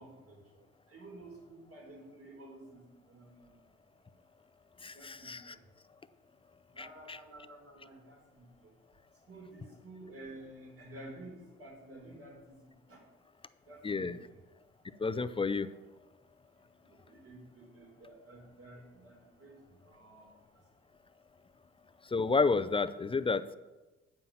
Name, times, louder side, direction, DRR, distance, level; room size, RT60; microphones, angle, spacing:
voice 1, 0.0-3.6 4.9-5.6 6.7-8.7 9.3-12.6 12.9-13.0 13.7-14.4 16.9-20.3, right 1 dB, 50° right, 1 dB, 3.5 m, -52 dB
voice 2, 4.8-5.5 6.8-7.2 13.8-14.2 15.0-15.7 22.1-23.5, left 4 dB, 20° left, 12 dB, 0.4 m, -31 dB
9.1 x 5.5 x 7.1 m, 1.1 s
cardioid pair, 90°, 30 cm